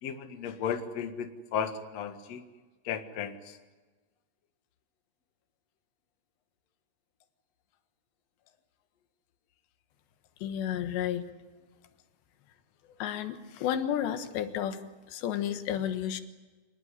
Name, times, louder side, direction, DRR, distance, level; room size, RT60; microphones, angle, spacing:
voice 1, 0.0-2.4 2.8-3.6, left 7 dB, 55° left, 7 dB, 2.1 m, -35 dB
voice 2, 10.4-11.3 13.0-14.8 15.1-16.2, left 10 dB, 85° left, 9 dB, 3.6 m, -31 dB
26.0 x 20.0 x 9.8 m, 1.3 s
omnidirectional pair, 4.9 m